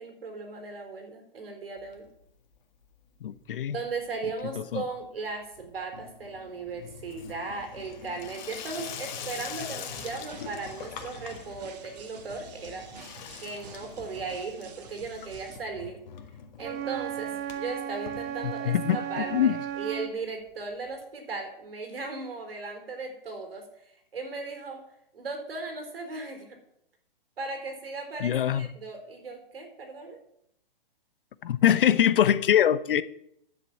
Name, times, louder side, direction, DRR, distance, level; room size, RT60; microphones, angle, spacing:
voice 1, 0.0-2.1 3.7-12.9 13.3-16.0 16.6-24.8 25.1-26.6 27.4-30.2, right 3 dB, 80° right, 4.4 m, -37 dB
Water tap faucet / Sink (filling or washing), 1.8-2.6 2.8-3.4 3.7-18.9 19.3-19.4 19.6-19.7 19.9-20.0 21.0-21.1, left 8 dB, 50° left, 1.8 m, -44 dB
voice 2, 3.2-3.8 4.7-4.8 18.4-19.0 19.3-19.6 28.2-28.7 31.4-33.0, left 10 dB, 65° left, 0.9 m, -23 dB
sound 1, 9.9-15.6, right 6 dB, 45° right, 1.9 m, -48 dB
Wind instrument woodwind instrument, 16.6-20.2, right 10 dB, 15° right, 0.4 m, -35 dB
10.0 x 7.8 x 7.3 m
hypercardioid pair, 145°, 29 cm